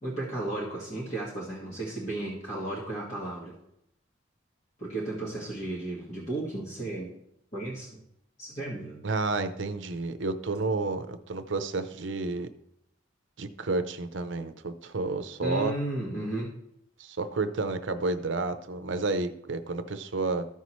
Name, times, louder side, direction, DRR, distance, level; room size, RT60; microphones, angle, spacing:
voice 1, 0.0-3.6 4.8-7.2 7.5-8.0 8.4-9.0 15.4-16.6, right 2 dB, 35° left, -6 dB, 1.7 m, -34 dB
voice 2, 9.0-12.5 13.4-15.7 17.0-20.5, right 3 dB, 75° right, 10 dB, 0.7 m, -30 dB
14.0 x 5.6 x 3.1 m, 0.77 s
head